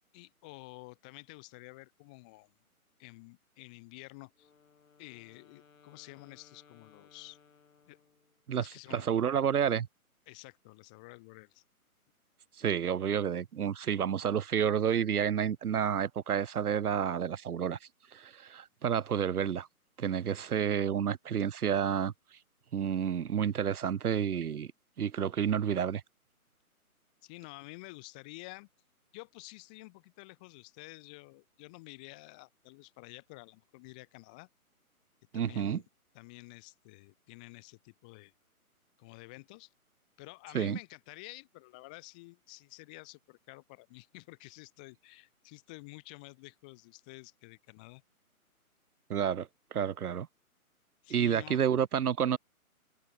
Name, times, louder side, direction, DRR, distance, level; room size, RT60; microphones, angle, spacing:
voice 1, 0.1-2.5 3.0-4.5 5.0-7.4 7.9-8.0 8.6-9.1 10.3-11.6 27.2-28.7 29.1-34.5 35.3-35.8 36.1-38.3 39.0-39.7 40.2-48.0 51.0-51.6, left 26 dB, 5° left, 0.6 m, -50 dB
Wind instrument woodwind instrument, 4.3-8.5, left 5 dB, 65° left, 5.5 m, -63 dB
voice 2, 8.5-9.9 12.6-17.8 18.1-19.7 20.0-22.1 22.7-24.7 25.0-26.0 35.3-35.8 40.5-40.8 49.1-50.3 51.1-52.4, right 8 dB, 80° right, 0.7 m, -30 dB
open air
figure-of-eight pair, 145°, 44 cm